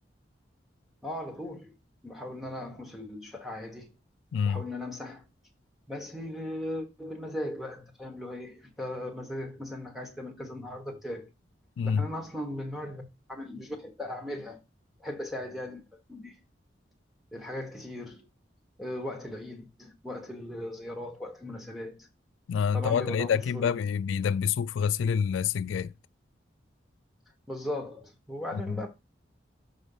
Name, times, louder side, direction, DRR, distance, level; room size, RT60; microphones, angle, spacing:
voice 1, 1.0-1.7 2.0-3.9 4.5-5.2 5.9-11.3 11.8-13.0 13.3-14.6 15.0-15.8 16.1-16.4 17.3-18.3 18.8-22.1 22.7-23.8 27.5-28.9, left 1 dB, ahead, 1.2 m, -38 dB
voice 2, 4.3-4.6 11.8-12.1 22.5-25.9 28.5-28.6, left 7 dB, 90° left, 0.3 m, -27 dB
6.3 x 3.5 x 5.5 m
head